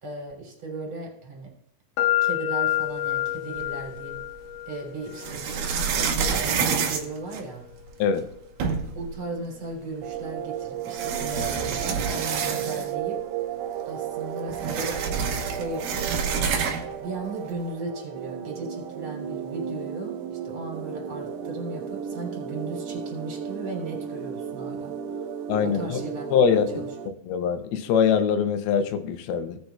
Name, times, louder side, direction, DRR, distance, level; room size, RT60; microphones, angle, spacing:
voice 1, 0.0-1.5 2.2-4.2 4.7-7.6 8.9-13.2 13.8-15.0 15.5-16.3 17.0-25.3 25.6-26.3 26.7-26.9, right 3 dB, 35° right, -1 dB, 3.3 m, -36 dB
sound 1, 2.0-9.8, left 14 dB, 65° left, 2.4 m, -31 dB
sound 2, 3.6-4.3 5.1-7.9 8.3-8.4 8.6-9.1 10.1-10.2 10.8-13.1 13.4-13.5 13.8-17.0, right 6 dB, 70° right, 2.5 m, -28 dB
sound 3, 10.0-27.1, right 8 dB, 90° right, 1.8 m, -34 dB
voice 2, 25.5-26.0 26.3-26.8 27.3-29.6, left 7 dB, 80° left, 8 dB, 2.6 m, -23 dB
17.0 x 7.9 x 2.3 m, 0.70 s
omnidirectional pair, 4.5 m